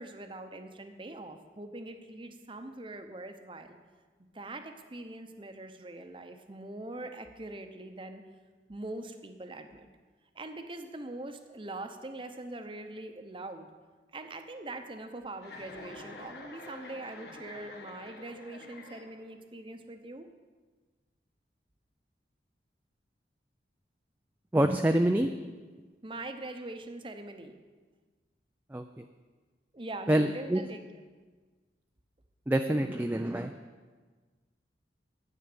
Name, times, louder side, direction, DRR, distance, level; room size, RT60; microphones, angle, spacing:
voice 1, 0.0-3.8 4.3-8.2 8.7-9.9 10.3-13.7 14.1-20.3 26.0-27.5 29.7-30.8, right 2 dB, 30° right, 7 dB, 0.8 m, -42 dB
Chuckle chortle, 15.4-19.4, left 2 dB, 70° left, 1.5 m, -47 dB
voice 2, 24.5-25.3 28.7-29.0 30.1-30.6 32.5-33.5, right 1 dB, 10° right, 5 dB, 0.4 m, -26 dB
10.5 x 8.4 x 6.8 m, 1.4 s
head